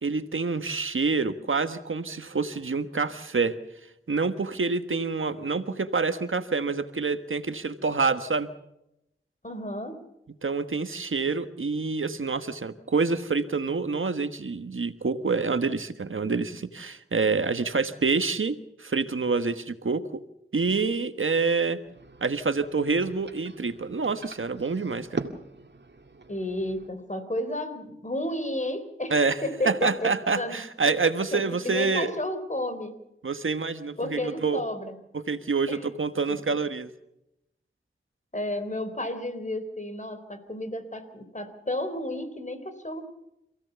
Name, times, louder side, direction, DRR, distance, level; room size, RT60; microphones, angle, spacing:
voice 1, 0.0-3.5 4.1-8.5 10.4-20.2 20.5-21.8 22.2-25.2 29.1-32.1 33.2-34.6 35.1-36.9, right 4 dB, 75° right, 10 dB, 1.4 m, -27 dB
voice 2, 9.4-10.0 26.3-30.6 31.3-33.0 34.0-34.9 35.7-35.8 38.3-43.1, left 1 dB, 35° left, 9 dB, 4.0 m, -32 dB
sound 1, 21.8-26.9, right 3 dB, 55° right, 2.1 m, -41 dB
27.5 x 16.5 x 7.0 m, 0.84 s
wide cardioid pair, 45°, 21 cm